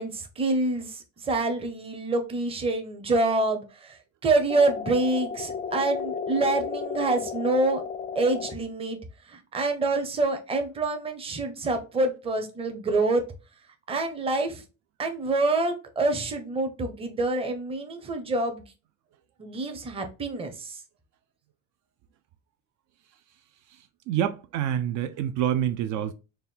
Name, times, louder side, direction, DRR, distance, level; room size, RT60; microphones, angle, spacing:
voice 1, 0.0-4.0 4.2-7.8 8.1-9.0 9.3-13.2 13.9-14.6 15.0-18.6 19.4-20.8, right 2 dB, 20° right, 0.6 m, -26 dB
sound 1, 4.5-8.5, left 6 dB, 25° left, 0.4 m, -33 dB
voice 2, 24.1-26.1, right 10 dB, 65° right, 0.4 m, -27 dB
4.2 x 2.2 x 3.5 m
cardioid pair, 165°, 31 cm